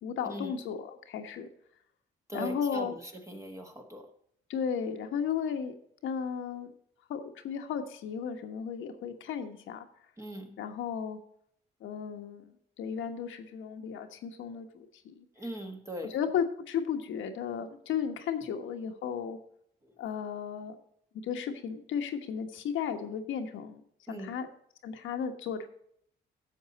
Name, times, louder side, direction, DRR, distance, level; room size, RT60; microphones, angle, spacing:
voice 1, 0.0-1.5 2.3-2.9 4.5-5.7 6.0-6.7 7.1-9.9 10.6-11.2 11.8-15.2 16.0-19.4 20.0-20.8 21.2-23.8 24.1-24.5 24.8-25.7, left 7 dB, 80° left, 6 dB, 1.3 m, -34 dB
voice 2, 2.3-2.9 3.3-4.1 10.2-10.6 15.4-16.1 24.1-24.3, right 1 dB, 15° right, 2 dB, 1.4 m, -40 dB
11.0 x 7.2 x 4.1 m, 0.68 s
cardioid pair, 90°, 20 cm